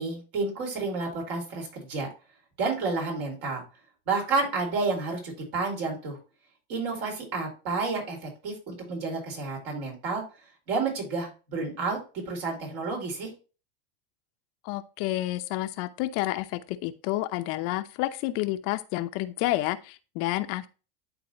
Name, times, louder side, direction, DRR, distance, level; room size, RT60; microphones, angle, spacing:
voice 1, 0.0-2.1 2.6-3.6 4.1-6.2 6.7-10.2 10.7-12.0 12.3-13.3, right 3 dB, 60° right, 4.6 m, -30 dB
voice 2, 14.6-20.7, left 16 dB, 55° left, 0.7 m, -30 dB
11.5 x 4.1 x 2.9 m
supercardioid pair, 110°, 29 cm